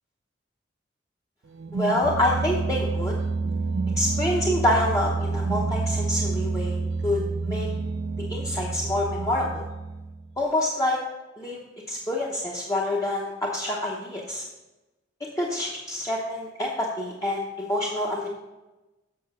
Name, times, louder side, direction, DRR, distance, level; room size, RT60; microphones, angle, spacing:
sound 1, 1.5-10.3, right 4 dB, 75° right, 0.5 m, -28 dB
voice 1, 1.7-3.1 4.0-7.7 8.3-9.6 10.4-11.0 11.4-11.6 11.9-14.4 15.4-18.3, left 1 dB, 20° left, -4 dB, 0.9 m, -27 dB
7.8 x 5.9 x 5.5 m, 1.1 s
head